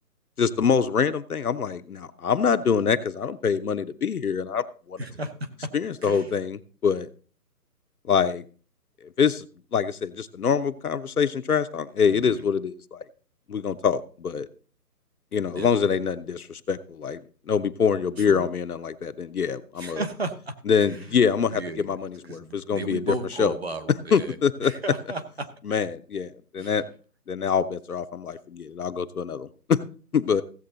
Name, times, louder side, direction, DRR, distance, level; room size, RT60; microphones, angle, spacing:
voice 1, 0.4-5.0 5.7-7.1 8.1-8.4 9.2-9.5 9.7-13.0 13.5-14.5 15.3-20.0 20.7-23.6 24.1-24.7 25.6-26.9 27.3-29.8 30.1-30.4, left 6 dB, 65° left, 10 dB, 0.9 m, -25 dB
voice 2, 5.0-5.7 6.0-6.3 12.1-12.5 15.5-16.0 18.2-18.5 19.8-20.5 20.8-21.2 21.5-21.9 22.3-24.4 24.6-25.5 26.6-26.7, right 2 dB, 40° right, 9 dB, 1.0 m, -35 dB
15.5 x 7.8 x 3.9 m, 0.39 s
hypercardioid pair, 180°, 47 cm